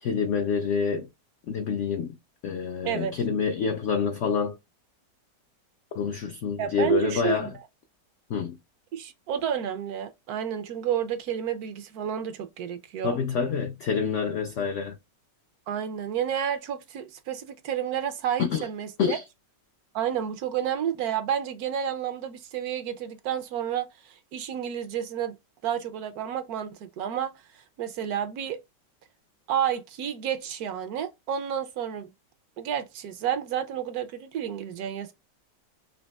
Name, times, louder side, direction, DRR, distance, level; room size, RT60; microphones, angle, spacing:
voice 1, 0.0-1.1 1.5-2.2 2.4-4.6 5.9-7.5 8.3-8.6 13.0-14.9 18.4-18.7 19.0-19.2, left 6 dB, 75° left, 0.6 m, -27 dB
voice 2, 6.6-7.5 8.9-13.2 15.7-19.2 19.9-25.4 25.6-27.3 27.8-28.6 29.5-32.1 32.6-35.1, right 9 dB, 70° right, 1.0 m, -30 dB
5.2 x 2.8 x 2.2 m
omnidirectional pair, 1.8 m